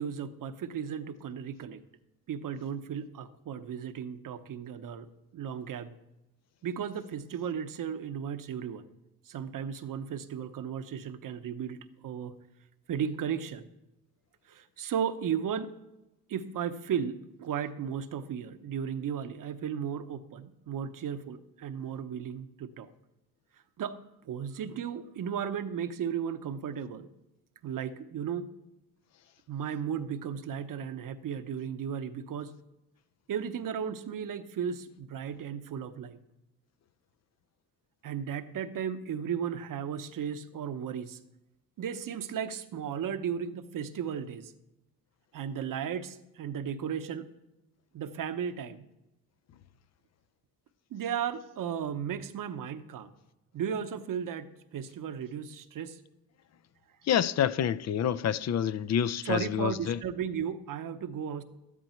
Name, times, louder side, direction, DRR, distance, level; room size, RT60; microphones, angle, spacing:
voice 1, 0.0-1.8 2.3-5.1 5.3-5.9 6.6-8.8 9.3-12.4 12.9-13.7 14.5-15.7 16.3-22.9 23.8-24.0 24.2-27.1 27.6-28.5 29.5-32.5 33.3-36.2 38.0-41.2 41.8-44.5 45.3-47.3 47.9-48.8 50.9-53.1 53.5-54.5 54.7-56.0 59.2-61.4, right 8 dB, 50° right, 0.9 m, -35 dB
voice 2, 57.1-60.0, left 9 dB, 40° left, 0.5 m, -28 dB
13.0 x 11.0 x 4.4 m
cardioid pair, 100°, 41 cm